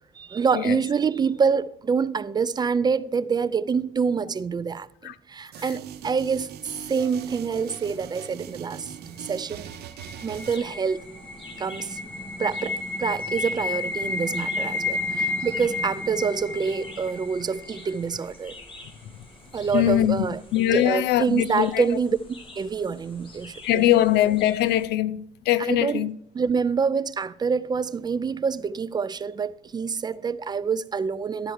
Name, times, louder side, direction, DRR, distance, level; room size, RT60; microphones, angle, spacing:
voice 1, 0.2-6.5 6.9-9.7 10.2-11.0 11.6-12.0 12.4-18.5 19.5-22.2 22.6-24.1 25.6-26.1 26.3-31.5, right 5 dB, 25° right, 0.3 m, -26 dB
sound 1, 5.5-10.6, right 10 dB, 75° right, 0.9 m, -41 dB
sound 2, 9.3-18.2, left 3 dB, 5° left, 2.1 m, -31 dB
Forest light breeze bird song, 10.4-24.9, left 2 dB, 30° left, 1.9 m, -48 dB
voice 2, 19.7-20.3 20.5-21.8 23.6-26.1, left 13 dB, 80° left, 0.5 m, -22 dB
12.0 x 4.5 x 6.4 m
cardioid pair, 110°, 17 cm